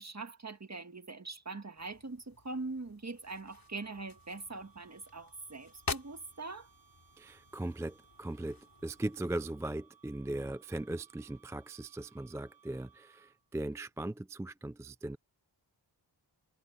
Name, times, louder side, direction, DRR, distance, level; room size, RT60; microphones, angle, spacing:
voice 1, 0.0-6.7, right 3 dB, 40° right, 1.9 m, -42 dB
sound 1, 1.8-9.4, left 4 dB, 55° left, 2.8 m, -47 dB
sound 2, 3.2-13.6, right 7 dB, 80° right, 4.0 m, -65 dB
voice 2, 7.2-15.2, right 1 dB, 5° right, 0.3 m, -39 dB
cardioid pair, 50°, 43 cm